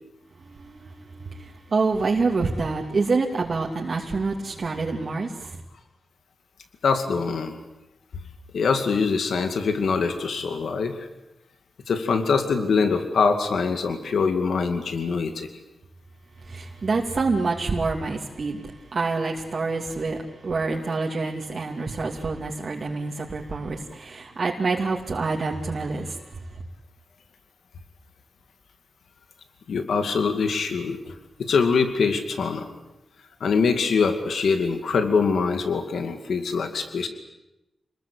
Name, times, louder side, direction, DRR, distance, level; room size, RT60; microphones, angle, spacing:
voice 1, 0.4-5.6 16.4-26.6, right 3 dB, 50° right, -1 dB, 2.6 m, -27 dB
voice 2, 6.8-7.6 8.5-11.1 11.9-15.5 29.7-31.1 31.4-32.7 33.4-37.1, left 5 dB, 90° left, 7 dB, 2.3 m, -23 dB
27.5 x 21.0 x 8.6 m, 0.94 s
wide cardioid pair, 105°, 0 cm